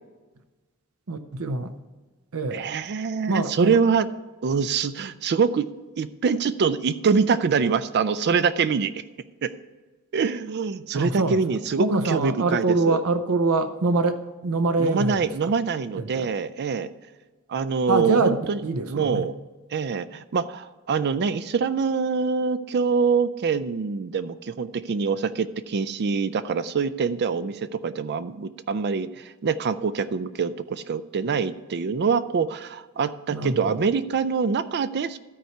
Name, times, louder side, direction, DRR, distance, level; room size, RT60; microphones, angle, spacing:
voice 1, 1.1-1.7 2.3-2.7 3.3-3.8 10.9-15.5 15.9-16.3 17.9-19.3 33.3-33.8, right 3 dB, 75° right, 8 dB, 0.7 m, -25 dB
voice 2, 2.5-4.1 4.4-5.7 6.0-8.9 9.4-9.5 10.1-13.0 14.8-16.9 17.5-18.6 18.9-19.3 19.7-35.2, right 5 dB, 50° right, 13 dB, 0.4 m, -25 dB
13.0 x 4.5 x 6.6 m, 1.2 s
head